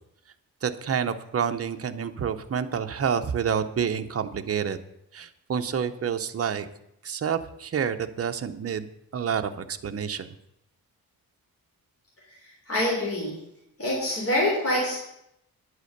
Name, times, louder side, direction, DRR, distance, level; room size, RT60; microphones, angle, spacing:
voice 1, 0.6-4.8 5.1-6.7 7.0-10.3, right 7 dB, 40° right, 8 dB, 0.7 m, -28 dB
voice 2, 12.7-13.4 13.8-15.0, left 1 dB, 40° left, -4 dB, 3.5 m, -25 dB
10.5 x 8.1 x 6.5 m, 0.80 s
wide cardioid pair, 175°, 37 cm